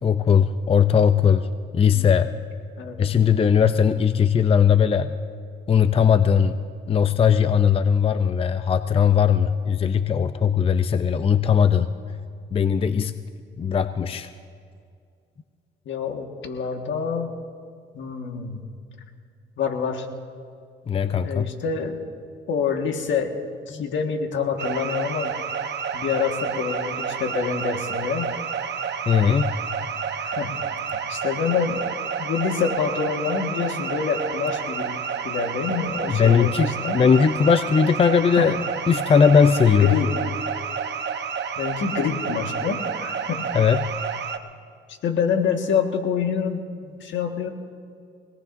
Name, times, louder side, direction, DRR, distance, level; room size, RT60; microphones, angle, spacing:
voice 1, 0.0-1.5 1.7-2.3 3.0-5.1 5.7-6.5 6.9-11.9 12.5-13.1 13.6-14.3 20.9-21.5 23.7-23.8 29.1-29.5 36.1-38.6 38.9-39.9 43.5-43.9, left 7 dB, 30° left, 11 dB, 0.5 m, -19 dB
voice 2, 15.8-17.3 17.9-18.6 19.6-20.1 21.2-22.0 22.5-23.3 23.7-25.4 25.9-28.3 30.2-30.6 31.1-31.8 32.2-37.0 38.4-38.6 39.7-40.2 41.6-43.4 44.9-47.5, left 6 dB, 70° left, 4 dB, 1.6 m, -26 dB
sound 1, 24.6-44.4, right 7 dB, 60° right, 0.9 m, -30 dB
24.5 x 18.5 x 2.6 m, 2.3 s
cardioid pair, 90°, 20 cm